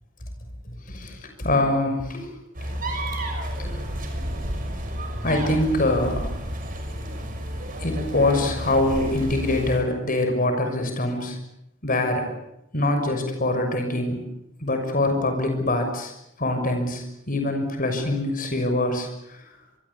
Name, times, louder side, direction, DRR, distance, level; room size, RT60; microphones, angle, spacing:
voice 1, 0.9-2.3 3.6-3.8 5.2-6.3 7.8-11.4 11.8-12.3 12.7-14.2 14.6-16.1 16.4-19.4, left 2 dB, 45° left, 5 dB, 6.3 m, -24 dB
sound 1, 2.5-9.8, equal, 45° right, 6.1 m, -31 dB
26.0 x 23.5 x 8.5 m, 0.83 s
head